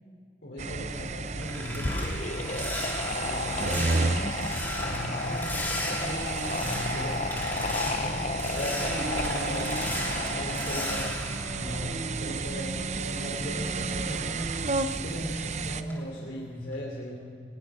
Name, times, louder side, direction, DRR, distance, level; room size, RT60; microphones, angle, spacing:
voice 1, 0.4-2.0 3.0-4.4 4.7-9.8 10.3-11.1 11.5-17.3, equal, 75° left, -3 dB, 3.3 m, -38 dB
sound 1, 0.6-15.8, right 3 dB, 40° right, 0.7 m, -32 dB
sound 2, 0.9-12.5 12.9-15.5 15.9-16.2 16.6-16.8, left 1 dB, 10° left, 3.4 m, -37 dB
sound 3, 1.7-11.4, left 3 dB, 40° left, 0.6 m, -34 dB
21.5 x 19.5 x 6.3 m, 2.3 s
head